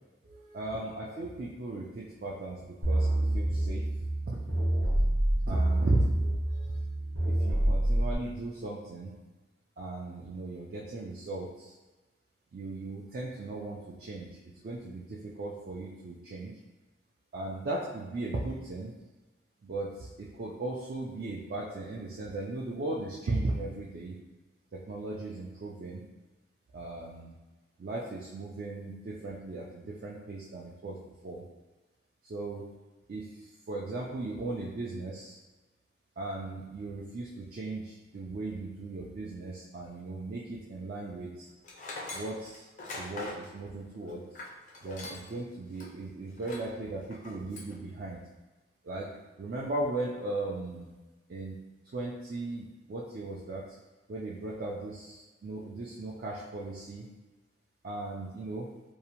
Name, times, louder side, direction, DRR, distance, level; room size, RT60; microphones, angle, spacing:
voice 1, 0.2-3.1 3.3-3.9 4.3-4.4 5.5-6.0 6.5-6.8 7.3-9.2 9.8-11.7 12.5-16.5 17.3-18.9 19.6-24.2 24.9-26.0 26.7-27.4 27.8-31.4 32.2-32.7 33.1-35.4 36.2-41.5 42.1-42.7 42.9-44.2 44.8-48.2 48.8-49.1 49.4-50.9 51.3-51.6 51.9-53.6 54.1-57.1 57.8-58.7, right 2 dB, 50° right, -5 dB, 0.3 m, -37 dB
sound 1, 2.8-8.2, right 1 dB, 75° right, 0.8 m, -27 dB
Tools, 41.6-45.4 45.7-45.9 46.4-46.7 47.1-47.7, left 2 dB, 40° left, 0.4 m, -42 dB
2.7 x 2.0 x 2.8 m, 1.2 s
head